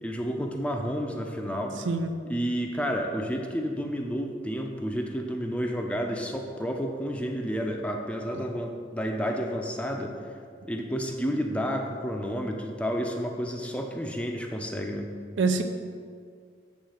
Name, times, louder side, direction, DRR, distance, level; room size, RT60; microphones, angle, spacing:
voice 1, 0.0-1.8 2.3-10.1 10.7-15.1, equal, 5° left, 2 dB, 0.6 m, -30 dB
voice 2, 1.8-2.1 8.3-8.4 15.4-15.6, right 4 dB, 70° right, 6 dB, 0.6 m, -25 dB
8.2 x 3.4 x 6.4 m, 2.1 s
head